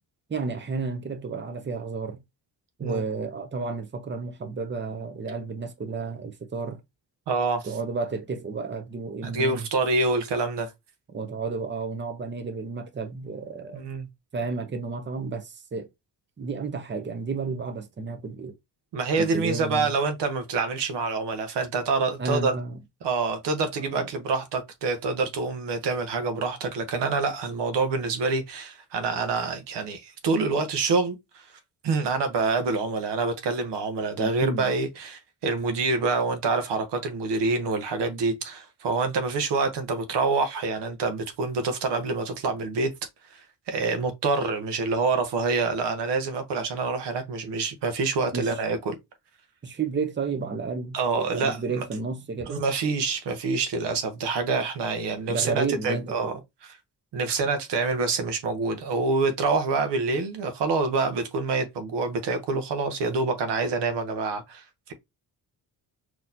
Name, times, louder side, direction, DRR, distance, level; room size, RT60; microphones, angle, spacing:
voice 1, 0.3-2.2 2.8-6.8 7.6-9.7 11.1-13.8 14.3-15.9 16.4-18.5 19.2-20.0 22.2-22.8 23.9-24.1 34.2-34.7 48.3-48.6 49.6-52.6 55.3-56.4, right 4 dB, 25° right, 0.8 m, -32 dB
voice 2, 7.3-7.6 9.2-10.7 13.7-14.1 18.9-22.6 23.0-31.5 31.8-42.9 43.3-49.0 50.9-51.8 52.5-56.3 57.1-64.9, right 4 dB, 85° right, 0.9 m, -26 dB
4.0 x 3.0 x 2.5 m
cardioid pair, 85°, 41 cm